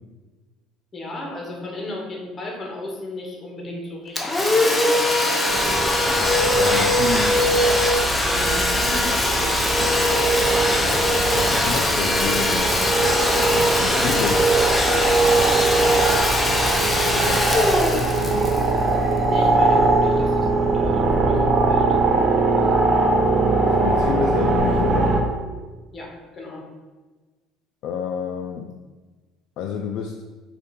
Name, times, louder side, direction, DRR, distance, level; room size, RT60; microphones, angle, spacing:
voice 1, 0.9-5.8 8.2-9.7 15.6-16.1 19.2-22.0 25.9-26.7, left 1 dB, 25° left, 0 dB, 1.0 m, -35 dB
Domestic sounds home sounds, 4.2-19.6, equal, 10° left, 0.6 m, -20 dB
sound 1, 5.5-25.2, right 3 dB, 40° right, 0.7 m, -22 dB
voice 2, 6.6-7.4 11.3-14.5 16.9-18.6 23.6-25.2 27.8-28.7 29.6-30.2, left 7 dB, 65° left, 3 dB, 0.3 m, -29 dB
5.0 x 2.4 x 4.0 m, 1.3 s
cardioid pair, 115°, 0 cm